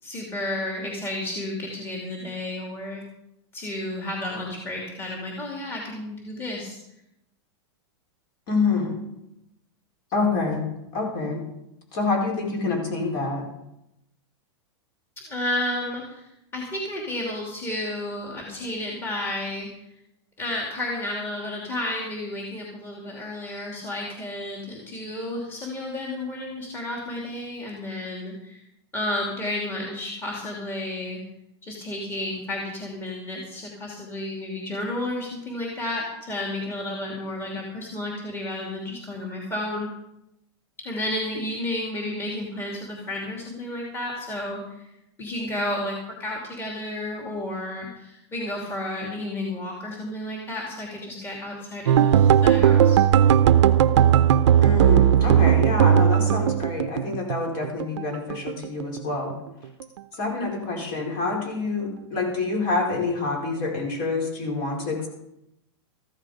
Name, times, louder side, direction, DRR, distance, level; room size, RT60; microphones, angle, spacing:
voice 1, 0.0-3.0 3.5-6.8 15.3-19.7 20.4-28.6 28.9-31.2 31.6-39.9 40.8-44.6 45.2-53.0, left 1 dB, 15° left, -2 dB, 2.8 m, -32 dB
voice 2, 8.5-9.0 10.1-10.6 10.9-11.4 11.9-13.4 54.6-59.3 60.2-65.1, left 3 dB, 45° left, 1 dB, 4.9 m, -27 dB
sound 1, 51.9-58.0 58.3-59.3 59.6-60.0 60.3-60.5, right 9 dB, 75° right, 0.7 m, -18 dB
14.5 x 12.5 x 5.1 m, 0.84 s
supercardioid pair, 155°, 15 cm